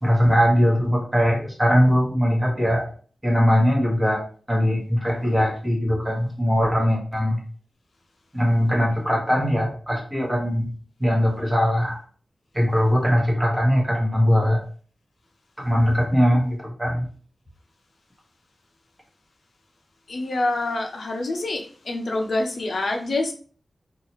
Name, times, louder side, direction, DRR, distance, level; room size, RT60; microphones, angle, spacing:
voice 1, 0.0-2.9 3.2-4.2 4.5-7.4 8.3-10.6 11.0-12.0 12.5-14.6 15.6-17.0, equal, 15° right, -2 dB, 1.0 m, -20 dB
voice 2, 20.1-23.3, left 2 dB, 65° left, 3 dB, 0.4 m, -26 dB
2.7 x 2.3 x 2.9 m, 0.43 s
wide cardioid pair, 125°, 0 cm